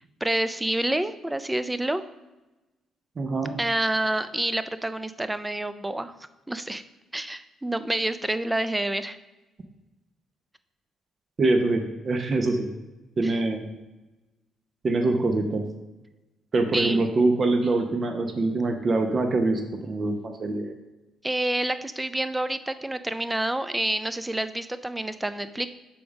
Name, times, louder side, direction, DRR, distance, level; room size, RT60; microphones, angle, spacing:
voice 1, 0.2-2.0 3.6-6.1 6.5-6.8 7.1-9.2 13.2-13.4 16.7-17.1 21.2-25.7, right 1 dB, 10° right, 12 dB, 0.4 m, -28 dB
voice 2, 3.2-3.5 11.4-12.7 13.2-13.7 14.8-15.6 16.5-20.7, right 2 dB, 40° right, 5 dB, 0.7 m, -24 dB
6.8 x 3.6 x 5.1 m, 1.1 s
cardioid pair, 90°, 0 cm